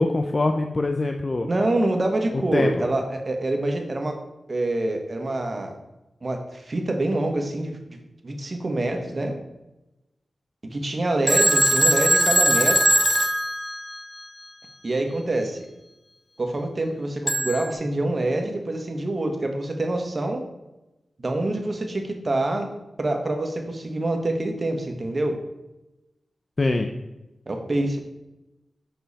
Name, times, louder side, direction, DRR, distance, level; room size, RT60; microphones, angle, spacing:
voice 1, 0.0-1.5 2.5-2.9 26.6-26.9, left 2 dB, 45° left, 5 dB, 0.6 m, -23 dB
voice 2, 1.4-4.2 4.5-5.7 6.2-8.0 8.2-9.4 10.7-12.9 14.8-15.6 16.4-20.4 21.2-22.7 23.0-25.4 27.5-28.0, right 2 dB, 45° right, 4 dB, 1.4 m, -26 dB
Telephone, 11.3-14.3 17.3-17.7, right 1 dB, 5° right, 0.9 m, -20 dB
7.1 x 5.8 x 4.2 m, 0.98 s
cardioid pair, 60°, 0 cm